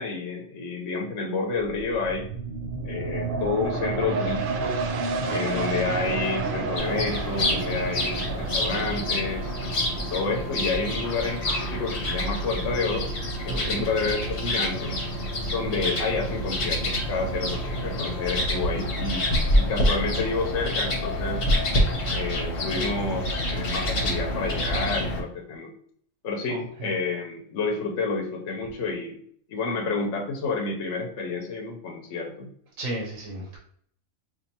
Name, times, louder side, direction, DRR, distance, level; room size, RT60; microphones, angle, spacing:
voice 1, 0.0-2.3 2.8-4.8 5.3-13.1 13.4-14.9 15.5-21.4 22.1-25.7 26.2-29.2 29.5-32.5, left 4 dB, 75° left, 1 dB, 1.0 m, -30 dB
sound 1, 1.6-14.9 15.3-15.4, right 4 dB, 60° right, 0.5 m, -32 dB
sound 2, 6.8-25.2, equal, 50° left, 1.0 m, -27 dB
voice 2, 13.5-13.9 26.5-26.9 32.8-33.6, right 1 dB, 85° right, -1 dB, 1.1 m, -34 dB
4.4 x 2.6 x 2.7 m, 0.62 s
omnidirectional pair, 1.3 m